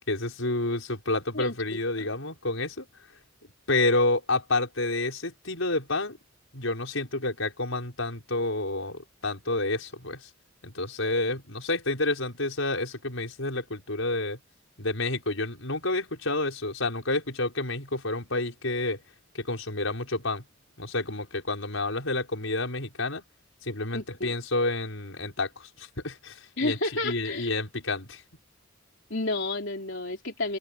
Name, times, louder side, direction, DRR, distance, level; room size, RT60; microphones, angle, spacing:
voice 1, 0.1-2.9 3.7-6.2 6.5-10.3 10.6-14.4 14.8-19.0 19.3-20.4 20.8-23.2 23.6-26.8 27.0-28.2, left 2 dB, 75° left, 5.5 m, -29 dB
voice 2, 1.3-2.1 23.9-24.3 26.6-27.5 29.1-30.6, left 2 dB, 60° left, 3.9 m, -31 dB
head